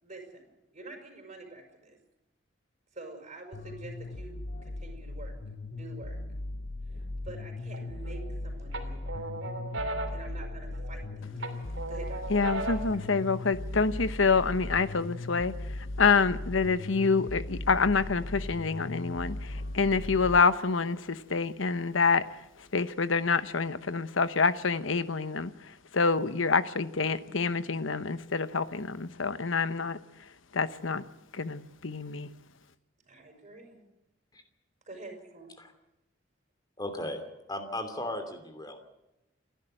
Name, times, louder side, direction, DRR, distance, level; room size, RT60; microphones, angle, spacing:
voice 1, 0.0-2.0 2.9-5.3 5.7-6.2 6.9-9.3 10.1-12.4 33.0-33.8 34.9-35.5, right 2 dB, 35° right, 3 dB, 6.2 m, -47 dB
sound 1, 3.5-20.4, left 2 dB, 55° left, 0.8 m, -38 dB
sound 2, 7.7-8.3 8.7-11.0 11.4-13.0, right 2 dB, 75° right, 3.1 m, -37 dB
voice 2, 12.3-15.5 16.0-22.2 22.7-25.5 25.9-30.0 30.5-31.0 31.3-32.3, left 4 dB, 80° left, 13 dB, 1.0 m, -27 dB
voice 3, 36.8-37.2 37.5-38.8, left 1 dB, 20° left, 7 dB, 2.9 m, -36 dB
29.0 x 11.5 x 7.9 m, 0.93 s
head